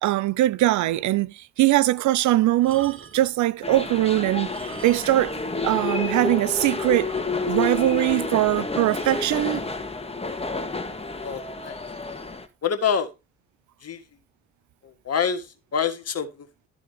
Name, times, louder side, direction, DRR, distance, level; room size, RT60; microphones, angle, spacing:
voice 1, 0.0-4.5 4.8-5.4 5.6-7.1 7.5-9.7, right 15 dB, 65° right, 0.6 m, -21 dB
sound 1, 2.5-3.4 4.3-5.3 5.6-5.7 6.3-6.4 6.6-6.7 7.1-7.7 8.9-9.3 10.2-10.4, right 7 dB, 40° right, 1.5 m, -44 dB
sound 2, 3.6-12.4, left 3 dB, 20° left, 1.9 m, -30 dB
voice 2, 11.2-11.8 12.6-13.1 13.8-14.0 15.1-15.5 15.7-16.3, left 7 dB, 50° left, 2.1 m, -25 dB
13.0 x 4.9 x 5.3 m
hypercardioid pair, 45°, 32 cm